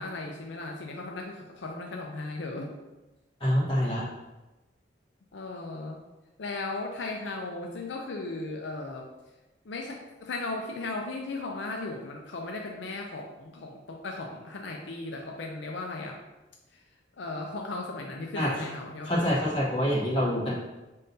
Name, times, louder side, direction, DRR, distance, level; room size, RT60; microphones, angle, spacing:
voice 1, 0.0-2.7 5.3-6.0 6.4-9.1 9.6-16.2 16.7-16.8 17.2-19.3, left 2 dB, 75° left, 1 dB, 0.5 m, -36 dB
voice 2, 3.4-4.0 18.3-18.5 19.0-20.5, equal, 25° left, -6 dB, 1.3 m, -26 dB
5.4 x 3.7 x 2.7 m, 1.1 s
head